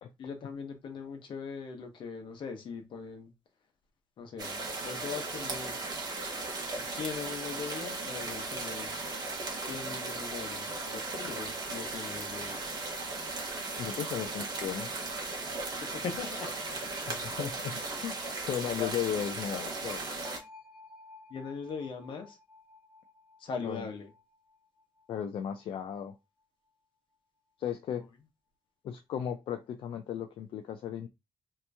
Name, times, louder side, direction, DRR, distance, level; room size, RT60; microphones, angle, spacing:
voice 1, 0.2-3.3 4.2-5.8 6.8-8.9 9.6-12.7 15.8-16.5 18.8-18.9 21.3-22.4 23.4-24.1, left 5 dB, 65° left, 1.0 m, -40 dB
sound 1, 4.4-20.4, right 3 dB, 45° right, 0.9 m, -37 dB
voice 2, 13.8-15.0 17.1-20.0 23.6-23.8 25.1-26.1 27.6-28.1 28.8-31.1, left 9 dB, 80° left, 0.4 m, -36 dB
sound 2, 20.2-26.1, left 3 dB, 5° right, 0.6 m, -55 dB
2.9 x 2.6 x 3.3 m
wide cardioid pair, 150°, 9 cm